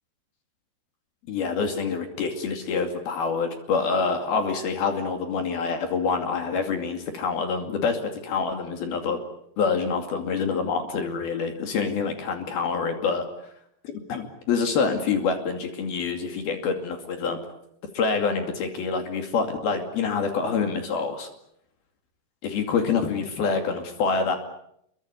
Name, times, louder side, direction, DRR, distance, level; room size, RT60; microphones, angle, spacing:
voice 1, 1.3-9.2 9.6-13.3 13.8-17.4 17.9-21.3 22.4-24.4, left 5 dB, 65° left, 5 dB, 4.3 m, -26 dB
28.0 x 23.5 x 8.3 m, 0.74 s
omnidirectional pair, 4.7 m